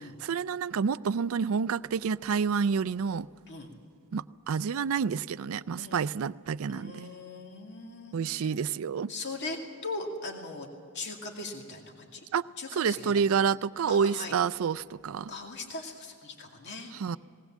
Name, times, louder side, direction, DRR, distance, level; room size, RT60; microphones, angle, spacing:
voice 1, 0.0-3.3 4.1-7.1 8.1-9.1 12.3-12.4 12.7-15.3 16.9-17.2, right 6 dB, 65° right, 0.4 m, -29 dB
voice 2, 5.8-6.1 6.7-8.5 9.1-10.7 10.9-12.3 12.6-13.2 13.9-14.4 15.3-16.9, left 3 dB, 50° left, 2.4 m, -39 dB
19.5 x 18.5 x 7.4 m
head